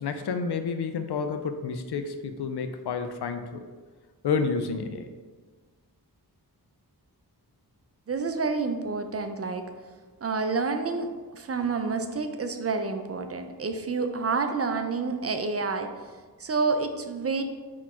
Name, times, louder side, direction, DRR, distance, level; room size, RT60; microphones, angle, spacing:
voice 1, 0.0-3.7 4.2-5.1, left 5 dB, 80° left, 8 dB, 0.5 m, -30 dB
voice 2, 8.1-9.7 10.2-15.9 16.4-17.4, right 4 dB, 40° right, 7 dB, 0.4 m, -29 dB
4.1 x 3.1 x 4.2 m, 1.4 s
wide cardioid pair, 55°, 39 cm